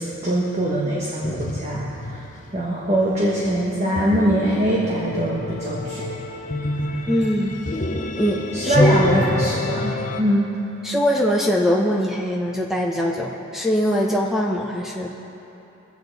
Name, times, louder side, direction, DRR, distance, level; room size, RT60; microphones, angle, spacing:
voice 1, 0.0-2.2 2.5-6.0 8.5-9.9 10.2-10.5, right 1 dB, 30° right, -5 dB, 1.5 m, -22 dB
sound 1, 1.2-10.2, left 1 dB, 35° left, 0.7 m, -26 dB
voice 2, 7.1-7.5 8.2-8.9 10.8-15.1, equal, ahead, -2 dB, 0.9 m, -22 dB
23.0 x 7.9 x 4.1 m, 3.0 s
head